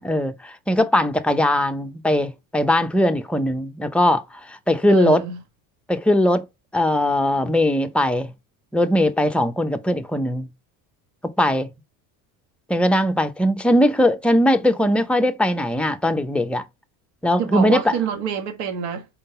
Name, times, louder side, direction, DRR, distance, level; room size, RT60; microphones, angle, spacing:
voice 1, 0.0-4.2 4.5-5.2 5.9-6.5 6.7-8.3 8.7-10.5 11.2-11.7 12.7-16.6 17.2-18.0, left 1 dB, 5° left, 0.6 m, -20 dB
voice 2, 4.9-5.4 17.4-19.1, right 6 dB, 80° right, 1.5 m, -26 dB
4.5 x 3.8 x 5.5 m
supercardioid pair, 110°, 41 cm